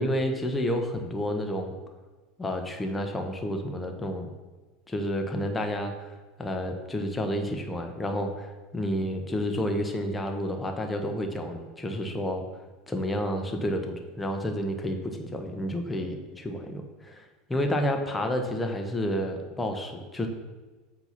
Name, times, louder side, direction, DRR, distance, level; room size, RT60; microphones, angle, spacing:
voice 1, 0.0-1.7 2.4-4.3 4.9-6.1 6.4-12.4 12.9-17.2 17.5-20.3, equal, 10° left, 4 dB, 0.9 m, -30 dB
8.0 x 2.9 x 5.7 m, 1.3 s
figure-of-eight pair, 80°, 0 cm